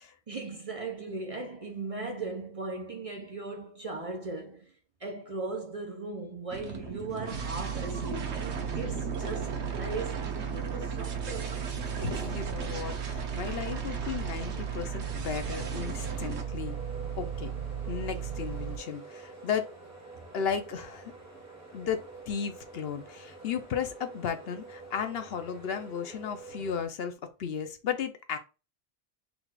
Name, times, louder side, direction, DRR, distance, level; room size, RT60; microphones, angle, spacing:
voice 1, 0.3-4.7 5.0-11.6, right 3 dB, 40° right, 0.6 m, -38 dB
sound 1, 6.5-16.4, right 4 dB, 85° right, 1.1 m, -38 dB
sound 2, 7.3-18.8, right 8 dB, 60° right, 1.0 m, -36 dB
sound 3, 11.5-26.9, right 3 dB, 15° right, 1.1 m, -48 dB
voice 2, 12.0-16.8 17.2-17.5 17.9-19.7 20.3-21.1 21.7-28.4, left 7 dB, 65° left, 0.8 m, -34 dB
3.9 x 2.4 x 4.5 m
omnidirectional pair, 1.1 m